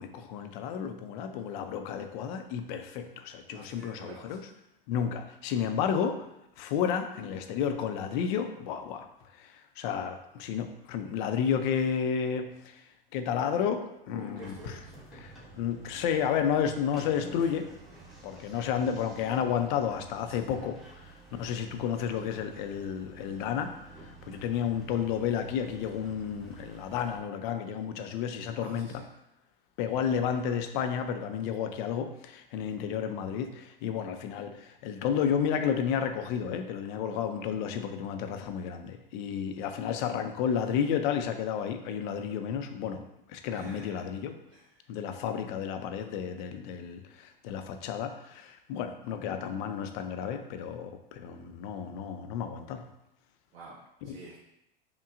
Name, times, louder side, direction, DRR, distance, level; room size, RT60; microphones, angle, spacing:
voice 1, 0.0-4.5 4.9-6.3 6.6-9.1 9.3-14.8 15.2-17.6 18.2-23.7 24.0-29.0 29.8-43.0 43.3-44.4 44.9-52.9 54.0-54.2, left 8 dB, 55° left, 7 dB, 0.5 m, -32 dB
voice 2, 3.5-4.4 14.1-14.9 17.4-17.5 17.9-18.6 20.4-20.5 28.5-29.0 43.5-44.1 44.5-44.9 53.5-54.4, right 3 dB, 75° right, -4 dB, 0.9 m, -49 dB
sound 1, 14.4-27.2, right 2 dB, ahead, 1.0 m, -50 dB
5.8 x 2.2 x 2.5 m, 0.85 s
hypercardioid pair, 100°, 30 cm